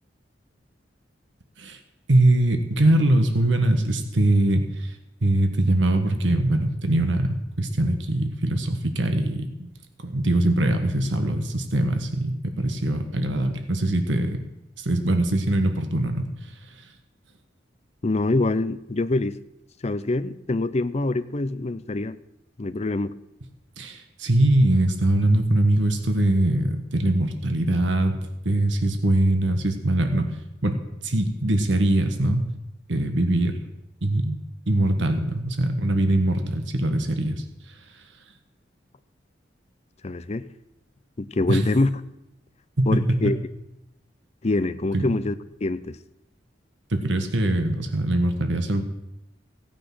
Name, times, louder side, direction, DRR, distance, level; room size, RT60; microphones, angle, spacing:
voice 1, 2.1-9.7 10.0-14.4 14.8-16.9 23.8-28.2 28.4-32.5 32.9-33.6 34.0-34.4 34.7-38.0 41.5-41.6 42.8-43.3 44.9-45.1 46.9-48.8, right 1 dB, 80° right, 7 dB, 1.4 m, -22 dB
voice 2, 18.0-19.4 19.8-22.2 22.6-23.2 40.0-40.5 41.2-41.9 42.9-43.4 44.4-45.3 45.6-46.0, left 2 dB, 35° left, 13 dB, 0.6 m, -25 dB
16.5 x 8.9 x 6.1 m, 0.88 s
head